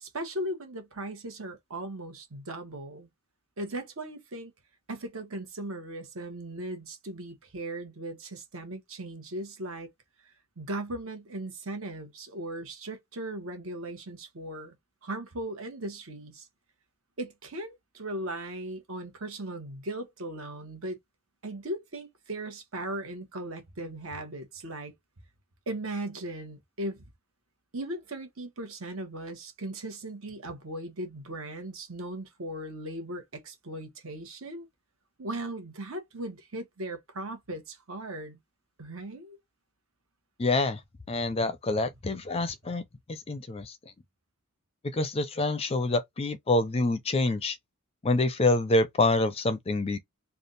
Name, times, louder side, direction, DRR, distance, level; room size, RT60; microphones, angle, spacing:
voice 1, 0.0-3.1 3.6-4.5 4.9-9.9 10.6-14.7 15.0-16.5 17.2-21.0 21.4-24.9 25.7-27.1 27.7-34.7 35.2-38.4 38.8-39.4, right 1 dB, 65° right, 1.1 m, -38 dB
voice 2, 40.4-40.8 41.1-42.8 43.1-43.7 44.9-47.6 48.0-50.0, left 2 dB, 25° left, 0.4 m, -26 dB
3.4 x 2.3 x 4.0 m
head